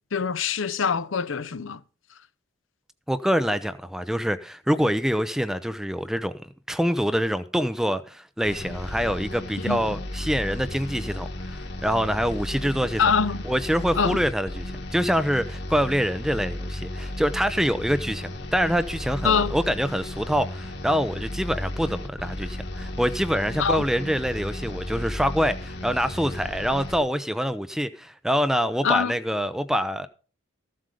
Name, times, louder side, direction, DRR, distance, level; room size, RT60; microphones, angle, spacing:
voice 1, 0.1-1.8 9.6-9.8 13.0-13.4 14.0-14.2 19.2-19.5 23.6-23.8 28.8-29.1, left 6 dB, 70° left, 0.6 m, -24 dB
voice 2, 3.1-13.0 13.4-14.7 14.9-30.1, equal, ahead, 0.5 m, -25 dB
sound 1, 8.4-27.0, left 1 dB, 50° left, 1.5 m, -34 dB
14.5 x 7.6 x 5.0 m
head